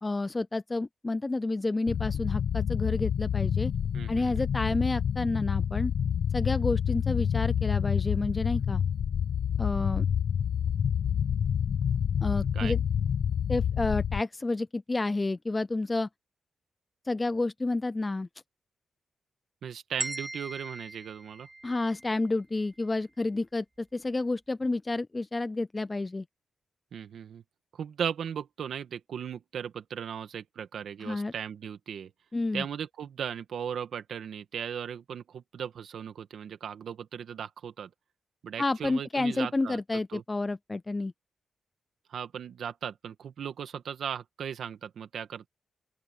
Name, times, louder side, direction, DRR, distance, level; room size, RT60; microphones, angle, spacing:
voice 1, 0.0-3.7 4.1-5.9 6.3-8.8 9.6-10.1 12.2-12.8 13.5-16.1 17.0-18.3 21.6-26.2 31.0-31.3 32.3-32.6 38.6-41.1, left 2 dB, 25° left, 0.3 m, -30 dB
sound 1, 1.9-14.2, left 8 dB, 75° left, 0.7 m, -28 dB
voice 2, 3.9-4.4 12.5-12.7 19.6-21.5 26.9-27.4 27.7-32.1 32.5-37.9 38.4-39.8 40.1-40.2 42.1-45.5, right 8 dB, 80° right, 1.8 m, -37 dB
sound 2, 20.0-22.2, right 2 dB, 20° right, 3.3 m, -39 dB
open air
cardioid pair, 100°, 0 cm